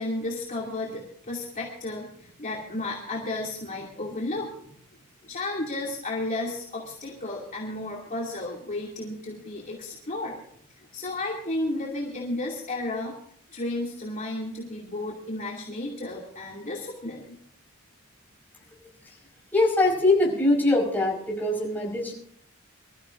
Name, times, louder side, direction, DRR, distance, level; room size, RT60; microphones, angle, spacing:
voice 1, 0.0-4.7 5.2-10.4 10.8-13.1 13.5-17.3, left 2 dB, 35° left, -4 dB, 2.7 m, -33 dB
voice 2, 19.5-22.1, left 2 dB, 10° left, -2 dB, 5.5 m, -22 dB
25.5 x 14.0 x 2.7 m, 0.64 s
head